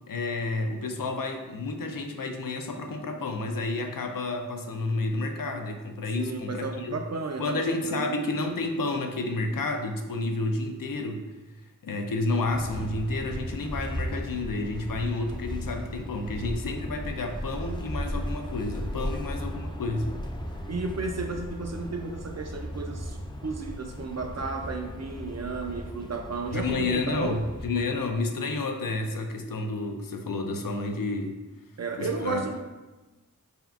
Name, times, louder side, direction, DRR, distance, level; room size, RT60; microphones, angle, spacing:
voice 1, 0.1-7.0 7.4-11.2 11.8-20.1 26.5-31.4 32.0-32.4, left 2 dB, 70° left, 5 dB, 0.5 m, -30 dB
voice 2, 6.1-8.4 19.0-19.3 20.7-23.2 23.4-27.4 31.8-32.6, right 3 dB, 50° right, 4 dB, 0.5 m, -33 dB
sound 1, 12.3-28.0, equal, 15° left, 0.4 m, -36 dB
4.3 x 3.5 x 2.4 m, 1.1 s
wide cardioid pair, 50°, 35 cm